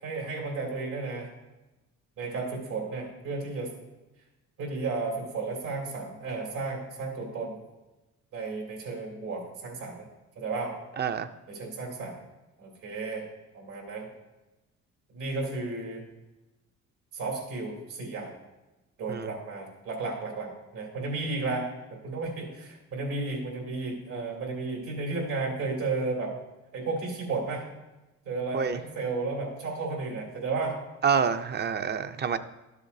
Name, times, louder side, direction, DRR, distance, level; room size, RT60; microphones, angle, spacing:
voice 1, 0.0-1.3 2.2-3.7 4.6-7.6 8.3-10.1 10.3-10.7 11.5-12.2 12.6-13.3 13.5-14.1 15.1-16.0 17.1-18.3 19.0-26.3 26.7-27.6 28.2-30.8, right 3 dB, 85° right, -2 dB, 3.0 m, -33 dB
voice 2, 11.0-11.3 19.1-19.3 28.5-28.8 31.0-32.4, right 6 dB, 35° right, 11 dB, 0.5 m, -27 dB
12.5 x 7.1 x 2.7 m, 1.1 s
cardioid pair, 90°, 30 cm